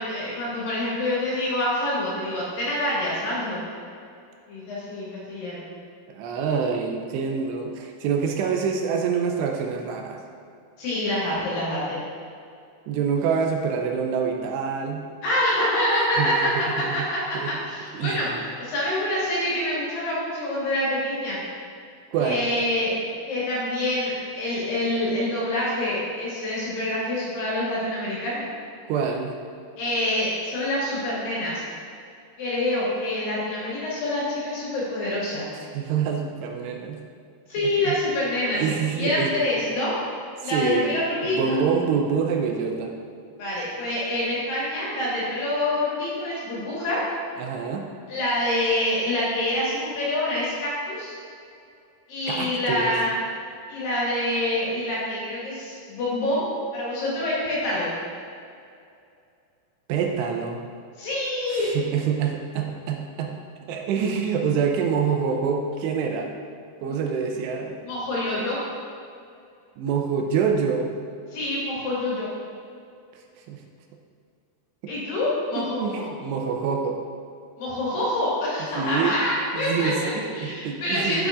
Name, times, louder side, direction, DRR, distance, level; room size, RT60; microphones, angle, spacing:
voice 1, 0.0-3.6 4.5-5.6 10.8-12.0 15.2-16.5 16.9-21.4 22.2-22.9 23.3-28.4 29.8-31.6 32.4-35.5 37.5-38.6 39.0-40.0 40.4-41.6 43.4-47.0 48.1-51.2 52.1-53.1 53.7-57.9 61.0-61.8 66.9-67.0 67.8-68.6 71.3-72.3 74.9-76.1 77.6-81.3, left 1 dB, 60° left, -7 dB, 3.3 m, -26 dB
voice 2, 6.1-10.2 12.9-15.1 16.2-17.1 17.3-17.6 17.9-18.2 22.1-22.5 28.9-29.3 35.7-37.0 37.6-38.0 38.6-39.3 40.5-40.9 41.2-42.9 47.4-47.8 52.3-52.9 59.9-60.6 61.8-63.3 63.7-66.3 66.8-67.8 69.8-70.9 73.5-73.6 74.8-74.9 75.6-77.0 78.7-79.2 79.5-81.3, right 6 dB, 85° right, 2 dB, 2.8 m, -26 dB
8.4 x 7.7 x 2.5 m, 2.5 s
omnidirectional pair, 4.9 m